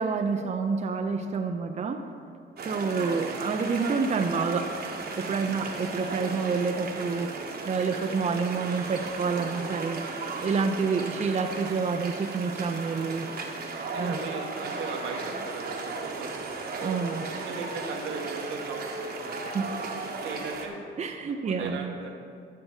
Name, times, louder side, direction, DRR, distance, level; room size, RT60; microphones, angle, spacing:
voice 1, 0.0-2.0 2.7-4.7 5.2-7.3 7.7-10.0 10.4-13.3 14.0-14.1 16.8-17.3 19.4-19.7 21.0-21.9, right 5 dB, 35° right, 5 dB, 0.6 m, -28 dB
sound 1, 2.6-20.7, right 3 dB, 50° right, 1.2 m, -35 dB
voice 2, 3.0-3.4 5.4-5.6 8.0-8.5 13.8-16.7 17.3-19.7 20.1-20.9 21.4-22.1, right 4 dB, 80° right, 1 dB, 1.2 m, -39 dB
13.0 x 6.9 x 3.5 m, 2.2 s
cardioid pair, 90°, 20 cm